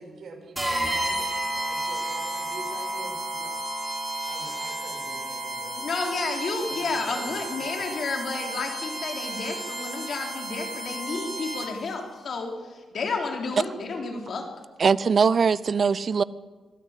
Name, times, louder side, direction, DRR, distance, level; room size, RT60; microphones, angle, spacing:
voice 1, 0.0-3.6 4.3-5.7 6.7-7.8 12.5-12.6, right 3 dB, 60° right, 5.7 m, -44 dB
sound 1, 0.5-11.9, right 1 dB, 10° right, 4.2 m, -32 dB
voice 2, 5.7-12.5 12.9-14.4, left 4 dB, 55° left, 3.8 m, -31 dB
voice 3, 14.8-16.2, right 5 dB, 40° right, 0.6 m, -21 dB
24.0 x 14.0 x 8.3 m
wide cardioid pair, 140°, 0 cm